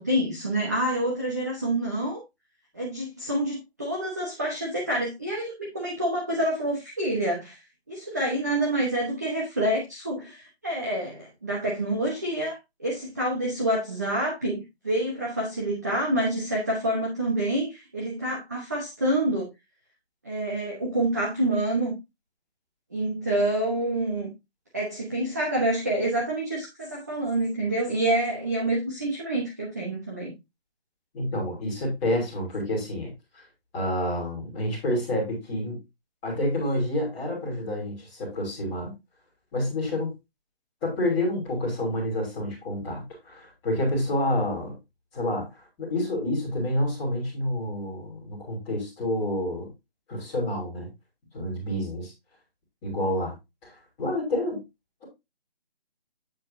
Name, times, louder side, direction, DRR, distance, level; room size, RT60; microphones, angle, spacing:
voice 1, 0.0-2.2 2.7-7.6 7.9-19.5 20.2-21.9 22.9-24.3 24.7-30.3, right 1 dB, 15° right, -3 dB, 1.1 m, -27 dB
voice 2, 31.1-33.4 33.7-35.8 36.2-38.9 39.5-40.1 40.8-44.7 45.1-49.7 50.1-50.9 51.3-52.1 52.8-53.3 53.6-54.6, left 1 dB, 5° left, -9 dB, 3.0 m, -28 dB
9.1 x 7.3 x 2.7 m, 0.22 s
figure-of-eight pair, 175°, 32 cm